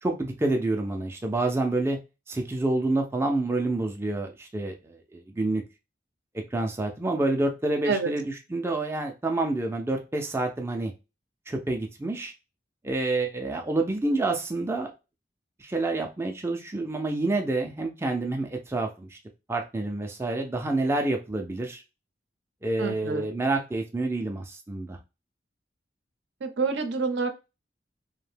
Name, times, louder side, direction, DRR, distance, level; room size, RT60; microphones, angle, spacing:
voice 1, 0.0-2.0 2.3-5.6 6.5-10.9 11.5-12.3 12.8-14.9 15.6-19.2 19.5-21.8 22.6-25.0, right 2 dB, 15° right, 3 dB, 0.3 m, -28 dB
voice 2, 22.8-23.3 26.4-27.3, right 4 dB, 70° right, 8 dB, 0.5 m, -27 dB
2.6 x 2.1 x 3.3 m, 0.28 s
head